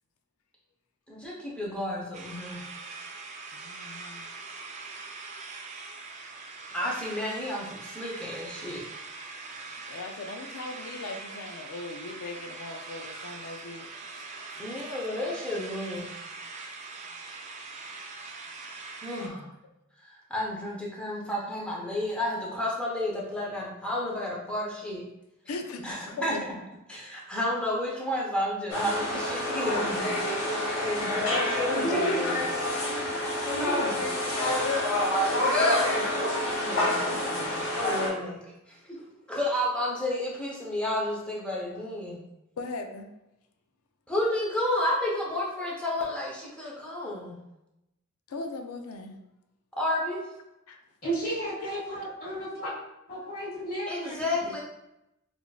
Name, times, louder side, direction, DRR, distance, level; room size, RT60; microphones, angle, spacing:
voice 1, 1.1-2.6 6.7-8.8 14.6-16.1 19.0-19.5 20.3-25.0 25.8-26.3 26.9-30.4 30.8-32.5 33.6-34.1 35.1-38.4 38.7-39.0 39.3-42.2 44.1-47.4 49.8-50.2 53.9-54.6, left 1 dB, 5° left, -4 dB, 0.7 m, -31 dB
sound 1, 2.1-19.3, right 3 dB, 35° right, 0.4 m, -42 dB
voice 2, 3.5-4.3 9.7-13.9 14.9-15.0 25.4-26.5 26.9-27.0 31.2-31.3 39.0-39.1 42.6-43.1 48.3-49.2 50.7-50.8, left 3 dB, 85° left, 5 dB, 0.4 m, -39 dB
sound 2, 28.7-38.1, left 1 dB, 70° left, 1.3 m, -27 dB
voice 3, 51.0-52.7 53.1-54.5, right 1 dB, 45° left, -8 dB, 1.5 m, -34 dB
4.9 x 2.5 x 2.3 m, 0.89 s
head